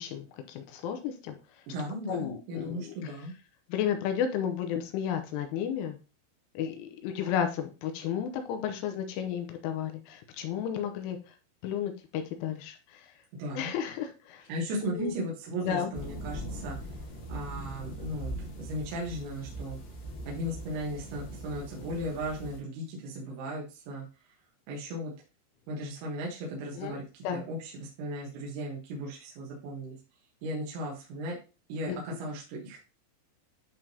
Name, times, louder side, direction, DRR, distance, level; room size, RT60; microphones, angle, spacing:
voice 1, 0.0-1.4 2.1-3.1 3.7-6.0 6.6-11.2 11.6-13.1 13.6-14.5 14.9-15.2 15.6-15.9 26.7-27.0 27.2-27.4 31.9-32.0, left 9 dB, 80° left, 6 dB, 3.2 m, -33 dB
voice 2, 1.7-3.3 13.4-13.7 14.5-16.8 17.3-19.8 20.3-24.1 24.7-25.1 25.7-30.0 30.4-31.4 31.7-32.8, equal, 70° right, -3 dB, 3.4 m, -36 dB
sound 1, 15.9-22.6, right 1 dB, 55° left, 3.0 m, -41 dB
10.5 x 3.7 x 2.8 m, 0.31 s
omnidirectional pair, 5.7 m